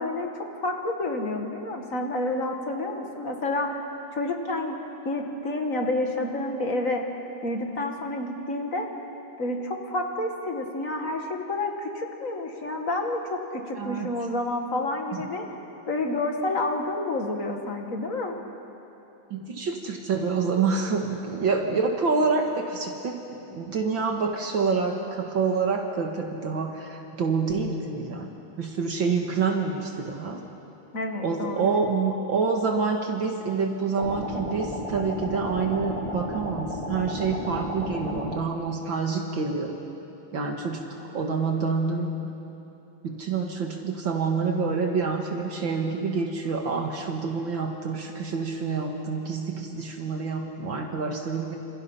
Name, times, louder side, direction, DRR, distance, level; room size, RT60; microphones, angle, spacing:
voice 1, 0.0-3.8 4.1-4.8 5.0-7.0 7.4-8.9 9.4-15.5 15.9-18.4 30.9-31.8, left 2 dB, 40° left, 2 dB, 2.3 m, -29 dB
voice 2, 13.8-14.1 15.1-15.3 19.3-23.2 23.5-28.3 28.6-30.4 31.2-39.8 40.3-42.3 43.0-51.6, right 4 dB, 65° right, 2 dB, 2.3 m, -27 dB
sound 1, 34.0-38.4, left 1 dB, 15° left, 2.2 m, -33 dB
28.0 x 27.0 x 5.7 m, 2.9 s
omnidirectional pair, 2.3 m